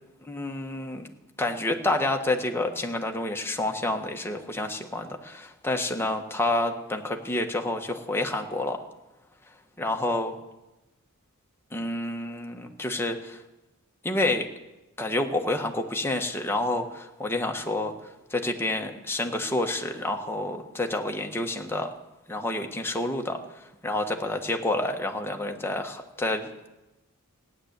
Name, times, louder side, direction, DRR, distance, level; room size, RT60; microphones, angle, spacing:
voice 1, 0.2-1.1 1.4-8.8 9.8-10.3 11.7-13.4 14.0-14.5 15.0-21.9 22.3-26.7, left 2 dB, 10° left, 3 dB, 1.3 m, -29 dB
16.0 x 10.5 x 8.1 m, 0.99 s
head